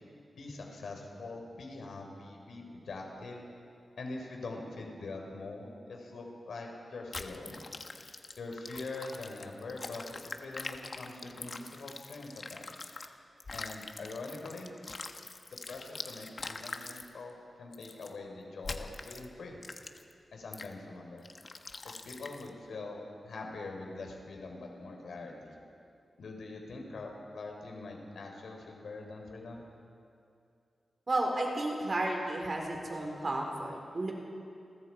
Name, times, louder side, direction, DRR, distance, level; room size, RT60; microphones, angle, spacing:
voice 1, 0.3-3.4 4.0-7.6 8.4-12.9 13.5-14.7 15.5-19.6 20.3-21.3 21.8-25.5 26.2-29.6, left 3 dB, 85° left, 1 dB, 4.5 m, -43 dB
sound 1, 7.1-13.1 13.4-17.1 17.7-18.1 18.6-19.3 19.6-20.1 20.5-20.7 21.2-22.5, left 3 dB, 40° left, 1.2 m, -43 dB
voice 2, 31.1-34.1, right 2 dB, 40° right, 0 dB, 4.4 m, -32 dB
30.0 x 22.0 x 4.8 m, 2.5 s
wide cardioid pair, 115°, 0 cm